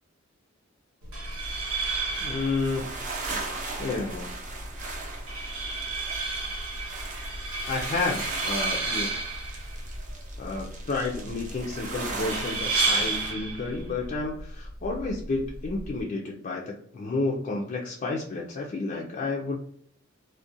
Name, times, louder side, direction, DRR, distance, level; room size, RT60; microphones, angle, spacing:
sound 1, 1.0-16.0, right 3 dB, 80° right, 0.9 m, -32 dB
sound 2, 1.4-13.3, right 3 dB, 40° right, 0.6 m, -38 dB
voice 1, 2.2-2.9 3.8-4.3 7.7-9.1 10.4-19.6, left 3 dB, 40° left, -2 dB, 0.4 m, -31 dB
2.4 x 2.1 x 2.6 m, 0.63 s
head